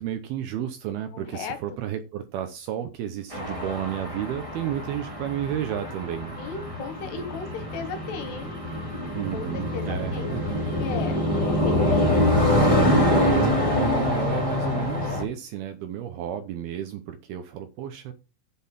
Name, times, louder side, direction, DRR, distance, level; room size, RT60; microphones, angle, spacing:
voice 1, 0.0-6.4 9.1-10.6 12.9-18.1, right 10 dB, 75° right, 2.4 m, -32 dB
voice 2, 1.1-1.6 6.4-8.5 9.3-10.3 10.7-12.3, left 5 dB, 70° left, 3.1 m, -36 dB
sound 1, 3.3-15.2, left 1 dB, 15° right, 1.3 m, -25 dB
7.6 x 7.6 x 5.9 m
omnidirectional pair, 5.2 m